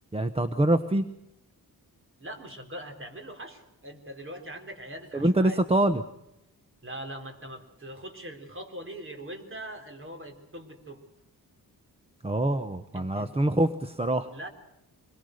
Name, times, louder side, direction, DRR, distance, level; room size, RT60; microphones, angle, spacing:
voice 1, 0.1-1.0 5.1-6.0 12.2-14.3, right 1 dB, 15° right, 9 dB, 0.9 m, -25 dB
voice 2, 2.2-5.6 6.8-11.0 12.9-13.3 14.3-14.5, right 1 dB, 35° right, 4 dB, 4.0 m, -41 dB
25.0 x 22.0 x 6.6 m, 0.82 s
wide cardioid pair, 165°, 37 cm